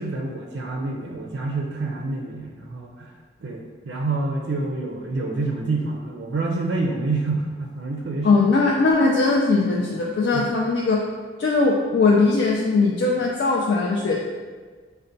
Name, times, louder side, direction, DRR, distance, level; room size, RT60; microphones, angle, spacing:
voice 1, 0.0-3.1 3.4-8.4 10.3-10.5, right 3 dB, 80° right, 0 dB, 0.4 m, -27 dB
voice 2, 8.2-11.0 11.4-14.2, left 3 dB, 75° left, -2 dB, 0.3 m, -20 dB
5.2 x 2.1 x 2.6 m, 1.5 s
head